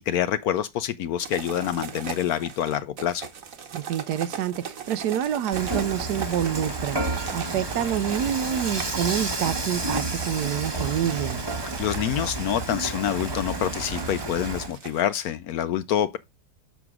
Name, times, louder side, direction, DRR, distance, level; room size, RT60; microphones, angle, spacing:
voice 1, 0.1-3.3 11.8-16.2, left 10 dB, 70° left, 1.0 m, -26 dB
sound 1, 1.2-15.1, right 7 dB, 55° right, 1.4 m, -39 dB
voice 2, 3.7-11.4, right 10 dB, 75° right, 1.1 m, -27 dB
Dishes pots and pans / Frying (food), 5.5-14.7, right 2 dB, 20° right, 1.0 m, -31 dB
6.9 x 6.2 x 3.6 m
omnidirectional pair, 1.9 m